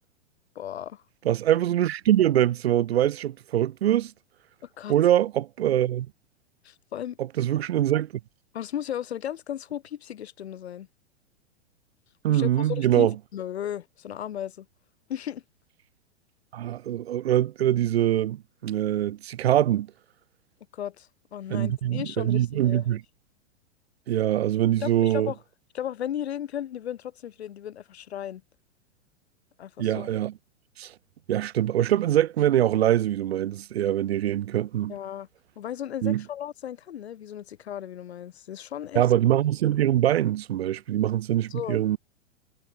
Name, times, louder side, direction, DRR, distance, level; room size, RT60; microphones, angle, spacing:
voice 1, 0.5-1.0 4.6-4.9 6.6-7.2 8.5-10.9 12.3-14.7 15.1-15.4 20.7-23.0 24.8-25.4 25.7-28.4 29.6-30.1 34.9-35.3 35.6-39.0 41.5-41.8, left 10 dB, 60° left, 6.0 m, -35 dB
voice 2, 1.2-4.1 4.9-6.1 7.2-8.1 12.2-13.1 16.5-19.9 21.5-23.0 24.1-25.3 29.8-30.3 30.8-30.9 31.3-34.9 36.0-36.2 38.9-42.0, right 12 dB, 60° right, 1.0 m, -23 dB
figure-of-eight pair, 105°, 35 cm